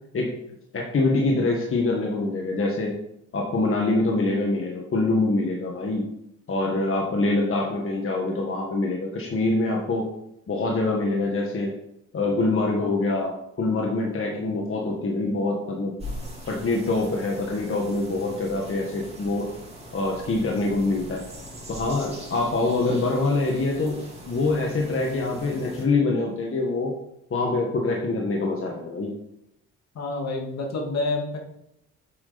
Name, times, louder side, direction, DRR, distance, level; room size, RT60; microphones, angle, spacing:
voice 1, 0.7-2.9 3.3-6.1 6.5-10.1 10.5-11.7 12.1-15.9 16.5-19.5 19.9-21.2 21.7-26.9 27.3-29.1, left 2 dB, 45° left, -1 dB, 1.7 m, -25 dB
sound 1, 16.0-25.9, equal, 20° right, 3.1 m, -41 dB
voice 2, 29.9-31.4, left 2 dB, 60° left, 1 dB, 2.4 m, -28 dB
8.7 x 7.8 x 4.2 m, 0.79 s
cardioid pair, 90°, 30 cm